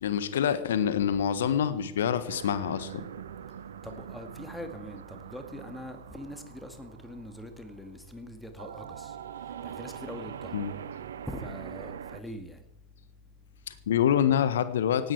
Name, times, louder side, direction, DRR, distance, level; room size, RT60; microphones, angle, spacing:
voice 1, 0.0-3.0 10.5-10.7 13.7-15.1, left 9 dB, 60° left, 13 dB, 1.5 m, -26 dB
sound 1, 2.3-8.2 8.6-12.2, right 9 dB, 65° right, 1.0 m, -43 dB
voice 2, 3.8-9.2 9.6-10.6 11.3-12.6, left 1 dB, 5° left, 6 dB, 2.3 m, -42 dB
18.5 x 16.5 x 4.8 m, 0.79 s
figure-of-eight pair, 90°, 0 cm